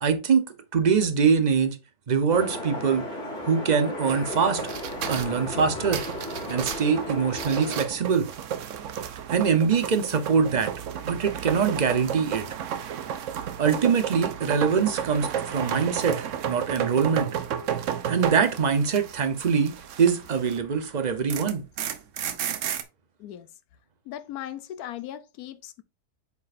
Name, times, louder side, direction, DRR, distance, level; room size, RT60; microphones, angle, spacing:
voice 1, 0.0-0.5 0.7-1.8 2.1-3.0 3.5-4.6 5.1-6.0 6.5-8.3 9.3-10.7 11.0-12.5 13.6-17.3 18.1-19.7 20.0-21.6, right 6 dB, 45° right, 0.5 m, -23 dB
sound 1, 2.3-7.9, left 1 dB, 50° left, 2.7 m, -35 dB
sound 2, 4.1-20.7 21.0-22.8, right 9 dB, 60° right, 0.9 m, -32 dB
voice 2, 24.1-25.8, left 11 dB, 75° left, 1.1 m, -38 dB
8.2 x 4.7 x 2.5 m
omnidirectional pair, 1.7 m